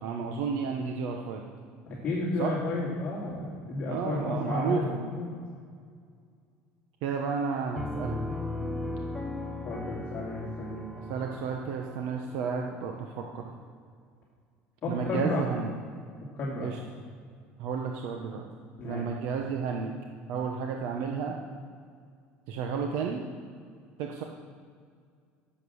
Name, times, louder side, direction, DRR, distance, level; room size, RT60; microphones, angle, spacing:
voice 1, 0.0-1.4 2.4-2.6 3.9-5.0 7.0-8.2 10.9-13.5 14.9-15.7 16.6-16.8 17.6-18.5 18.8-19.9 20.3-21.4 22.5-23.2 24.0-24.2, right 5 dB, 70° right, 2 dB, 1.1 m, -32 dB
voice 2, 2.0-4.8 5.1-5.3 9.6-10.9 14.8-15.5 16.3-16.7 18.8-19.0, left 2 dB, 35° left, -5 dB, 2.6 m, -32 dB
Piano, 7.8-13.3, left 2 dB, ahead, 1.0 m, -37 dB
14.0 x 7.7 x 6.4 m, 2.1 s
cardioid pair, 160°, 5 cm